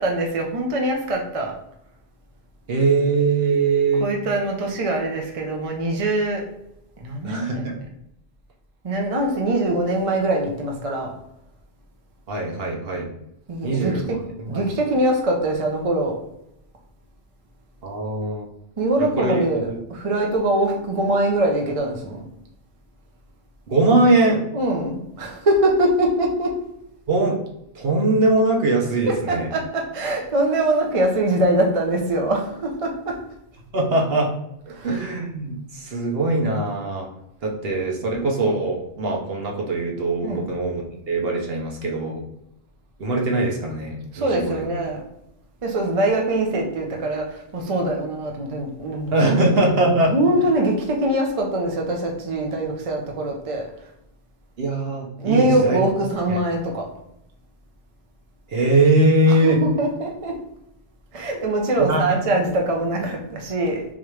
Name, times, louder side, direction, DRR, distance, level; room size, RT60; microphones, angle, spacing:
voice 1, 0.0-1.5 4.0-6.5 7.0-7.8 8.8-11.1 13.5-14.2 14.4-16.2 18.8-22.3 24.5-26.6 29.1-33.2 34.7-35.0 40.2-40.5 44.1-45.0 45.6-49.4 49.9-53.7 55.2-56.9 59.3-60.4 61.1-63.9, right 1 dB, 35° right, 1 dB, 0.6 m, -23 dB
voice 2, 2.7-4.1 7.2-7.7 12.3-13.1 13.6-14.1 14.5-14.6 17.8-18.5 19.0-19.7 23.7-24.4 27.1-27.4 27.7-29.5 33.7-34.3 34.8-37.1 37.4-42.2 43.0-44.6 49.1-50.1 54.6-55.8 58.5-59.6 61.8-62.2, right 2 dB, 60° right, 0 dB, 0.9 m, -21 dB
3.6 x 3.1 x 3.1 m, 0.80 s
omnidirectional pair, 1.2 m